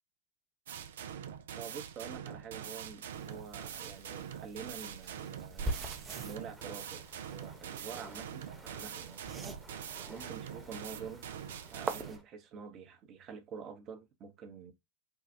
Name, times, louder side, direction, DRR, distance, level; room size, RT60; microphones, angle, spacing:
Evil Kitchen, 0.7-12.2, right 9 dB, 70° right, 0.5 m, -44 dB
voice 1, 1.5-5.9 6.2-9.2 10.1-11.3 11.7-14.7, right 6 dB, 40° right, 0.9 m, -47 dB
sound 1, 3.1-12.2, right 2 dB, 20° right, 0.7 m, -44 dB
sound 2, 6.5-12.2, equal, 5° right, 1.0 m, -57 dB
4.6 x 2.4 x 2.6 m
figure-of-eight pair, 90°, 0 cm